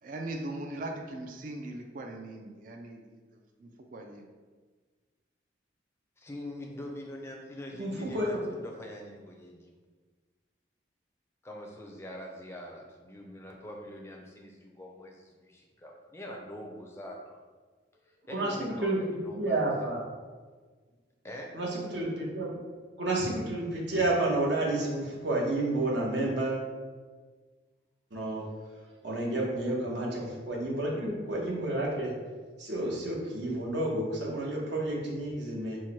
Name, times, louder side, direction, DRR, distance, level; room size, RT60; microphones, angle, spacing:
voice 1, 0.0-4.3, right 2 dB, 45° right, 3 dB, 0.4 m, -40 dB
voice 2, 6.2-9.8 11.4-17.4 18.1-19.6 21.2-21.5, left 1 dB, 15° left, 0 dB, 0.5 m, -44 dB
voice 3, 7.8-8.3 18.3-20.0 21.5-22.5 23.0-26.5 28.1-28.4 29.0-32.1 32.6-35.8, right 2 dB, 70° right, -3 dB, 1.0 m, -30 dB
4.5 x 2.2 x 4.4 m, 1.4 s
head